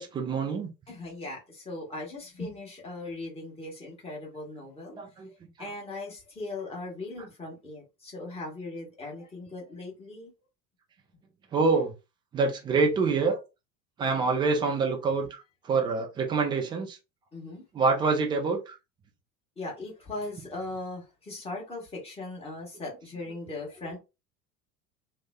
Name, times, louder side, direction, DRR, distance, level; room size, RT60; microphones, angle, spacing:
voice 1, 0.0-0.7 5.0-5.7 11.5-11.9 12.3-13.4 14.0-17.0 17.7-18.8, right 4 dB, 10° right, 0.3 m, -26 dB
voice 2, 0.9-5.0 5.6-10.3 17.3-17.6 19.6-24.0, left 2 dB, 15° left, 1.2 m, -39 dB
2.9 x 2.0 x 2.2 m
figure-of-eight pair, 70°, 46 cm